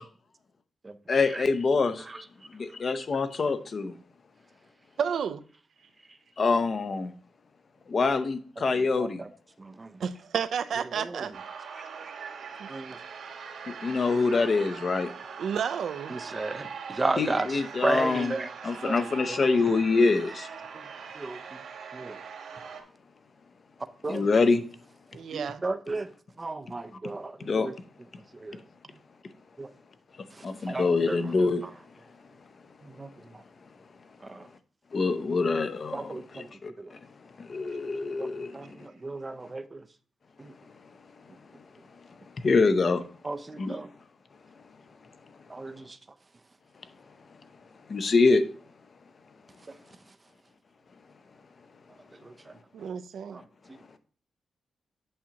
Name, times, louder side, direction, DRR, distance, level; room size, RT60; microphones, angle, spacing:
voice 1, 1.1-2.1 2.5-3.9 6.4-7.1 7.9-9.2 13.7-15.1 17.2-18.3 18.6-20.5 24.1-24.6 27.4-27.7 30.4-31.6 34.9-37.0 37.4-38.9 42.4-43.0 43.6-43.8 47.9-48.4, left 4 dB, 35° left, 0.6 m, -25 dB
voice 2, 5.0-5.4 10.0-11.3 12.0-12.1 12.6-12.7 15.4-16.2 25.1-25.6 52.7-53.4, right 7 dB, 65° right, 0.5 m, -31 dB
voice 3, 8.6-9.3 9.6-9.9 10.9-11.3 12.7-13.0 16.1-18.5 18.8-19.4 20.7-20.9 21.1-21.6 21.9-22.2 24.0-24.3 25.3-26.1 26.4-27.7 28.3-28.6 29.6-29.7 30.3-31.2 31.6-31.7 32.8-33.4 34.2-34.5 35.9-36.5 36.8-36.9 38.2-39.9 40.4-40.5 43.2-43.9 45.5-46.0 49.7-49.8 52.1-52.5 53.3-53.4, right 3 dB, 20° right, 0.5 m, -34 dB
sound 1, 11.3-22.8, right 6 dB, 85° right, 2.1 m, -42 dB
8.6 x 7.2 x 2.9 m
wide cardioid pair, 180°, 0 cm